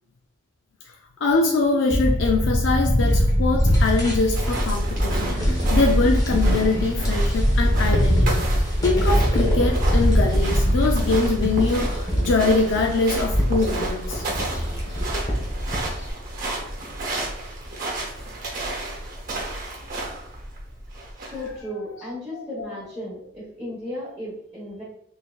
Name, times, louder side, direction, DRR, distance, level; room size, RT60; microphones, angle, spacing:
voice 1, 1.2-8.4 8.8-14.2 22.3-22.7, left 3 dB, 65° left, 2 dB, 0.4 m, -23 dB
sound 1, 1.9-16.1, equal, 20° left, 0.8 m, -22 dB
sound 2, 4.3-21.6, right 1 dB, 45° right, 1.0 m, -32 dB
voice 2, 21.3-24.8, left 1 dB, 15° right, -10 dB, 1.2 m, -34 dB
3.8 x 3.5 x 2.4 m, 0.74 s
head